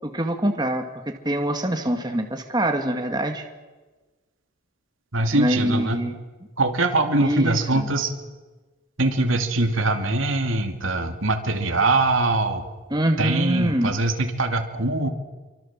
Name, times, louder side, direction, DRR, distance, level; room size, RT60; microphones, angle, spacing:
voice 1, 0.0-3.4 5.3-6.2 7.2-7.9 12.9-14.0, right 1 dB, 20° right, 4 dB, 2.0 m, -24 dB
voice 2, 5.1-6.0 6.6-8.1 9.0-12.7 13.2-15.1, right 2 dB, 70° right, 5 dB, 2.7 m, -22 dB
28.0 x 24.5 x 7.5 m, 1.2 s
head